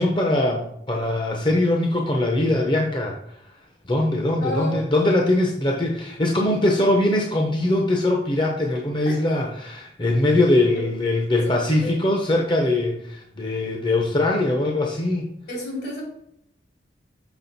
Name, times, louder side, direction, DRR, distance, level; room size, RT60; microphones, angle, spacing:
voice 1, 0.0-3.4 3.9-15.2, left 1 dB, 25° left, 0 dB, 0.8 m, -22 dB
voice 2, 4.4-4.8 9.0-9.2 11.3-11.9 15.5-16.0, left 1 dB, 70° left, -2 dB, 2.8 m, -31 dB
6.2 x 6.1 x 4.1 m, 0.77 s
head